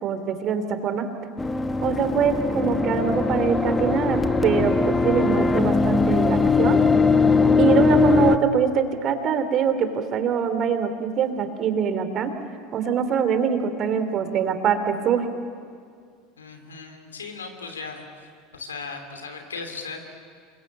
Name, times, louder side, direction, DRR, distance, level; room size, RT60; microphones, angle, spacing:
voice 1, 0.0-1.1 1.8-6.8 7.6-12.3 12.7-15.3, right 7 dB, 45° right, 9 dB, 2.9 m, -24 dB
sound 1, 1.4-8.4, left 4 dB, 15° left, 1.2 m, -20 dB
voice 2, 16.4-18.3 18.5-20.0, left 4 dB, 90° left, 5 dB, 3.0 m, -37 dB
28.0 x 22.5 x 8.7 m, 2.1 s
hypercardioid pair, 80°, 0 cm